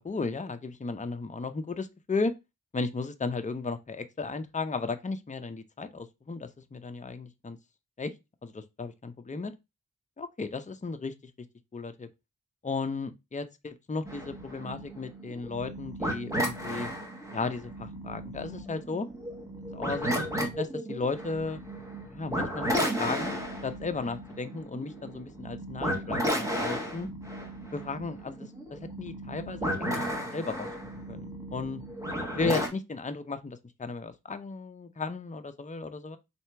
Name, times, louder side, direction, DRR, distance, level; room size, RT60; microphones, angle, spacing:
voice 1, 0.0-2.3 2.7-7.6 8.0-8.1 8.4-9.5 10.2-11.3 11.7-12.1 12.6-16.9 17.3-19.1 19.7-21.6 22.1-27.1 27.7-30.7 31.1-31.8 32.4-36.2, left 4 dB, 20° left, 0.5 m, -35 dB
sound 1, 14.0-32.7, equal, 10° right, 1.4 m, -34 dB
3.3 x 2.8 x 4.4 m
cardioid pair, 40°, 34 cm